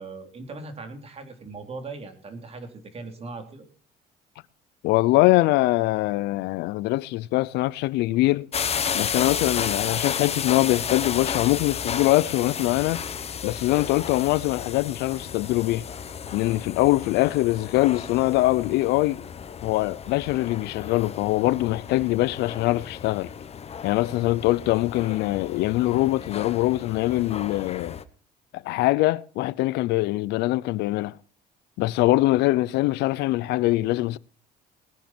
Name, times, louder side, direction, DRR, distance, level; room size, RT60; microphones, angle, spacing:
voice 1, 0.0-3.6, right 3 dB, 35° right, 3.4 m, -39 dB
voice 2, 4.8-8.5 8.9-13.0 13.4-15.8 16.3-19.2 19.6-23.3 23.8-28.0 28.5-31.2 31.8-34.2, left 18 dB, 90° left, 0.6 m, -23 dB
sound 1, 8.5-28.0, left 7 dB, 40° left, 1.1 m, -33 dB
19.5 x 10.5 x 4.5 m
cardioid pair, 110°, 17 cm